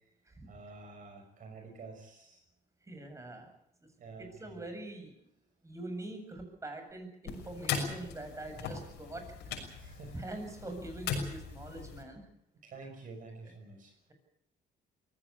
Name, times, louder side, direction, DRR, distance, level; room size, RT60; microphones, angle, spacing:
voice 1, 0.5-2.4 4.0-4.6 8.6-8.7 9.8-10.2 12.6-13.9, right 3 dB, 50° right, 3 dB, 6.0 m, -49 dB
voice 2, 2.9-3.5 4.2-5.1 5.6-9.8 10.1-12.3, right 2 dB, 15° right, 5 dB, 7.6 m, -44 dB
sound 1, 7.3-12.0, left 6 dB, 85° left, 6.3 m, -39 dB
23.0 x 17.0 x 8.5 m, 0.73 s
cardioid pair, 110°, 17 cm